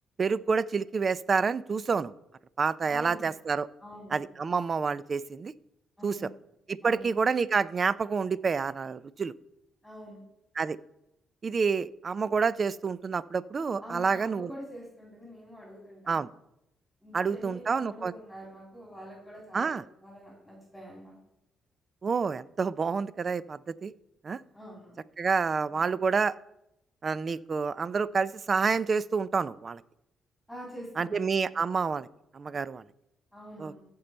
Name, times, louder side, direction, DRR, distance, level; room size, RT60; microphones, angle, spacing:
voice 1, 0.2-2.1 2.6-3.7 4.1-5.5 6.0-6.3 6.7-9.3 10.6-10.8 11.4-14.5 16.1-16.3 17.1-18.1 19.5-19.8 22.0-23.9 24.2-24.4 25.2-26.4 27.0-29.8 31.0-32.1 32.3-32.8 33.6-33.7, right 5 dB, 40° right, 18 dB, 0.4 m, -28 dB
voice 2, 2.9-3.2 3.8-4.3 6.0-6.3 6.8-7.1 9.8-10.2 13.8-16.3 17.0-21.2 24.5-25.0 30.5-31.4 33.3-33.8, equal, ahead, -3 dB, 3.3 m, -45 dB
15.0 x 5.4 x 4.4 m, 0.83 s
cardioid pair, 90°, 0 cm